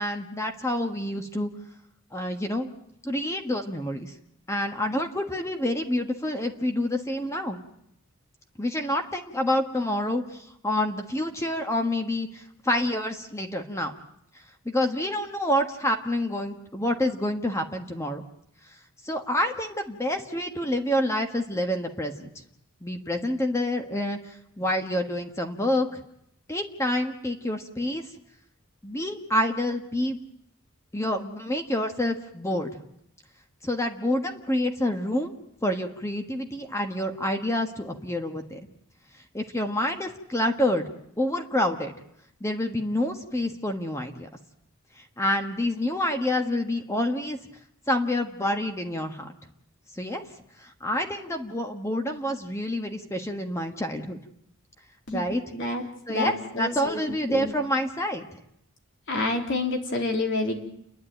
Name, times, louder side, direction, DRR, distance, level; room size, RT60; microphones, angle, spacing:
voice 1, 0.0-1.5 2.1-2.7 3.0-4.1 4.5-7.6 8.6-13.9 14.6-18.2 19.0-22.1 22.8-24.2 24.6-26.0 26.5-28.0 28.8-30.2 30.9-32.7 33.6-35.3 35.6-38.6 39.3-40.8 41.2-41.9 42.4-44.3 45.2-47.4 47.9-49.3 49.9-50.3 50.6-54.2 55.1-55.4 56.1-58.4, left 1 dB, 15° left, 5 dB, 1.4 m, -27 dB
voice 2, 55.5-55.8 56.1-57.0 57.3-57.5 59.1-60.6, left 2 dB, 60° left, 2 dB, 3.7 m, -28 dB
29.5 x 11.0 x 9.2 m, 0.77 s
head